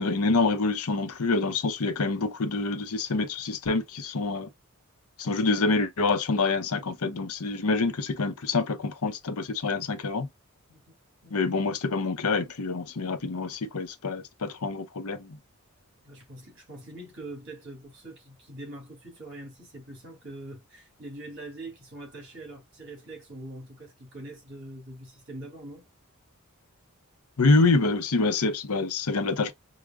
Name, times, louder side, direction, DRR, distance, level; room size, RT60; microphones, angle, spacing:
voice 1, 0.0-4.5 5.2-10.3 11.3-15.4 27.4-29.5, left 3 dB, 85° left, 0.7 m, -26 dB
voice 2, 16.0-25.9, right 1 dB, 55° right, 2.3 m, -43 dB
4.8 x 2.1 x 2.3 m
head